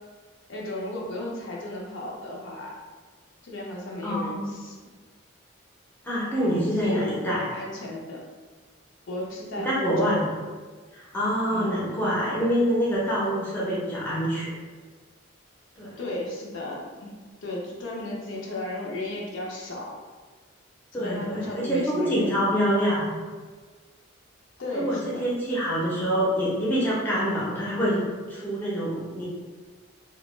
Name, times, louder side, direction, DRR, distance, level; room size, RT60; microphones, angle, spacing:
voice 1, 0.5-2.7 3.4-4.8 6.4-8.2 9.1-10.2 11.5-11.9 16.0-17.2 17.4-20.0 20.9-22.5 24.6-25.2, left 1 dB, 65° left, -3 dB, 0.5 m, -34 dB
voice 2, 4.0-4.5 6.0-7.5 9.6-10.3 10.9-14.5 15.8-16.0 20.9-23.1 24.7-28.0 28.3-29.2, equal, 10° left, -7 dB, 0.5 m, -26 dB
2.2 x 2.1 x 3.1 m, 1.4 s
head